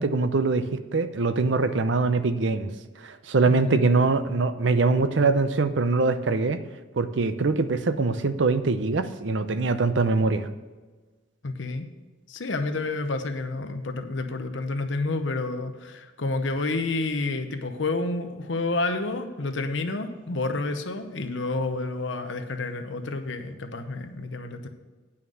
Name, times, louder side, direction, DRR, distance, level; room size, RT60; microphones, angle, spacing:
voice 1, 0.0-2.7 3.0-6.6 7.0-10.5, right 3 dB, 70° right, 11 dB, 0.6 m, -23 dB
voice 2, 3.5-3.8 11.4-11.9 12.3-24.7, left 3 dB, 70° left, 7 dB, 0.9 m, -29 dB
9.3 x 5.8 x 6.4 m, 1.3 s
head